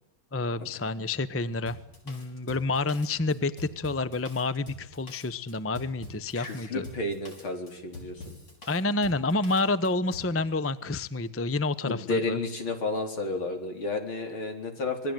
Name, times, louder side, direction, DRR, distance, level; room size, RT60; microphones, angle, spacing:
voice 1, 0.3-1.8 2.0-6.8 8.7-12.4, left 3 dB, 15° left, 14 dB, 0.6 m, -29 dB
Drum kit, 1.7-10.4, left 2 dB, 60° left, 6.5 m, -45 dB
voice 2, 6.4-8.4 11.8-15.1, left 2 dB, 80° left, 4 dB, 4.9 m, -32 dB
27.0 x 21.0 x 9.2 m, 0.87 s
omnidirectional pair, 2.2 m